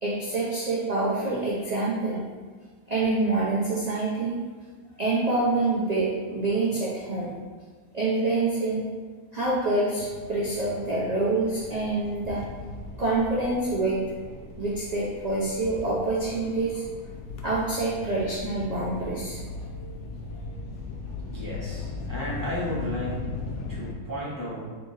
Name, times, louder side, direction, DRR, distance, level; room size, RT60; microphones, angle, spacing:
voice 1, 0.0-2.3 2.9-4.4 5.0-7.3 7.9-8.8 9.3-12.4 13.0-14.0 14.6-16.8 17.4-19.4, right 2 dB, 55° right, -7 dB, 0.4 m, -26 dB
sound 1, 10.0-23.9, left 3 dB, 70° left, 1.0 m, -38 dB
voice 2, 21.3-23.2 23.7-24.6, left 1 dB, 25° left, -8 dB, 0.4 m, -33 dB
3.6 x 2.9 x 3.9 m, 1.5 s
omnidirectional pair, 1.6 m